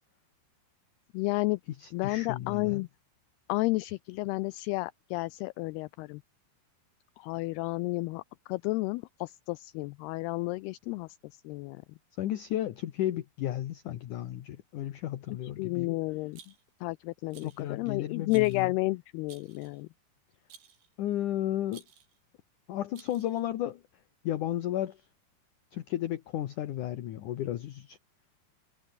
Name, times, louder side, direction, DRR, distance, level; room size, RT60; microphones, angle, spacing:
voice 1, 1.1-1.6 1.9-2.9 3.5-6.2 7.2-8.2 8.5-11.1 11.4-11.8 15.3-16.4 16.8-19.9, left 22 dB, 90° left, 2.2 m, -31 dB
voice 2, 1.8-2.8 12.2-16.0 17.4-18.7 21.0-21.8 22.7-23.8 24.2-25.0 25.7-28.0, left 12 dB, 65° left, 2.1 m, -33 dB
Rattle, 16.3-16.8 17.3-17.7 18.3-18.7 19.3-19.8 20.5-20.9 21.7-22.2 22.9-23.5, right 7 dB, 65° right, 5.8 m, -55 dB
omnidirectional pair, 5.1 m